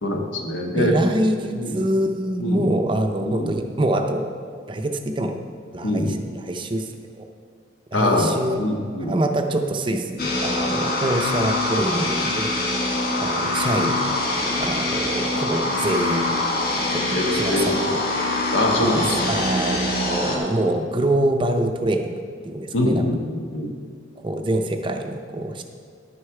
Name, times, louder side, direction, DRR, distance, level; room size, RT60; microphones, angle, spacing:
voice 1, 0.0-1.0 1.5-1.8 2.4-2.7 3.2-3.5 5.8-6.1 7.9-8.3 8.6-9.1 17.1-17.9 18.5-19.3 22.7-23.7, left 1 dB, 70° left, 2 dB, 1.2 m, -23 dB
voice 2, 0.7-4.3 4.7-5.4 5.7-7.3 7.9-8.6 9.0-12.5 13.2-14.2 14.6-16.4 16.9-18.0 18.8-22.2 22.4-23.1 24.2-25.6, right 1 dB, 25° right, 5 dB, 0.5 m, -25 dB
sound 1, 10.2-20.4, left 2 dB, 50° left, 1.3 m, -24 dB
10.5 x 6.5 x 4.7 m, 2.1 s
head